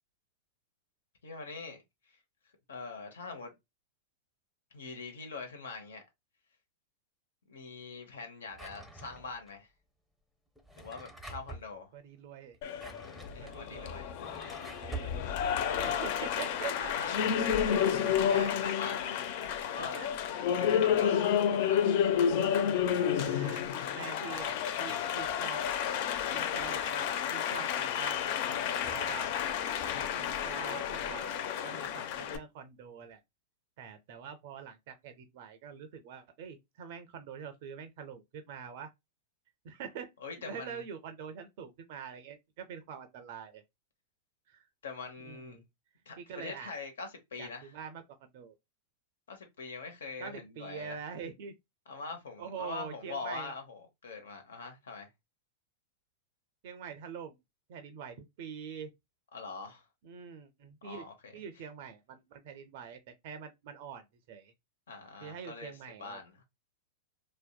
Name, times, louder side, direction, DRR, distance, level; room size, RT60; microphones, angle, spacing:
voice 1, 1.2-2.2 2.7-3.5 4.7-6.0 7.5-9.7 10.8-11.9 13.3-14.2 15.6-16.0 16.8-19.3 19.6-20.0 20.5-22.0 40.2-40.8 44.8-45.6 46.1-47.7 49.3-51.0 51.9-55.1 59.3-59.9 60.8-61.3 64.9-65.7 66.0-66.3, left 4 dB, 80° left, 0.8 m, -43 dB
Drawer open or close, 8.5-9.5 10.6-11.7 12.5-15.2, right 3 dB, ahead, 0.6 m, -46 dB
voice 2, 11.9-12.6 13.4-14.0 14.7-15.2 15.8-16.9 17.8-18.6 19.8-20.1 22.9-23.6 23.9-25.7 26.3-29.3 29.8-31.4 31.6-33.2 33.8-38.9 39.6-40.1 40.4-43.6 44.5-44.7 45.2-45.6 46.2-46.7 47.4-48.6 50.2-51.5 52.4-53.5 56.6-57.4 57.7-58.9 60.0-61.1 61.3-64.5 65.2-66.2, right 7 dB, 60° right, 0.4 m, -45 dB
Applause, 12.6-32.4, left 8 dB, 55° left, 0.4 m, -31 dB
sound 1, 27.9-32.5, left 4 dB, 40° left, 1.2 m, -51 dB
2.6 x 2.1 x 2.2 m
hypercardioid pair, 105°, 0 cm